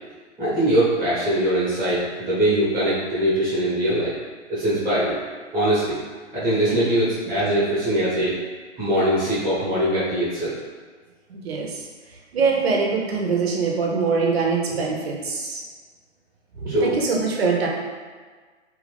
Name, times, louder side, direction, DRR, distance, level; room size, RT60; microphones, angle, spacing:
voice 1, 0.4-4.1 4.5-5.2 5.5-5.9 6.3-8.3 8.8-10.5 16.7-17.0, right 1 dB, 10° right, -12 dB, 1.0 m, -22 dB
voice 2, 11.3-11.9 12.3-15.6 16.6-17.7, right 4 dB, 55° right, -1 dB, 0.7 m, -23 dB
2.7 x 2.5 x 3.3 m, 1.5 s
hypercardioid pair, 145°, 37 cm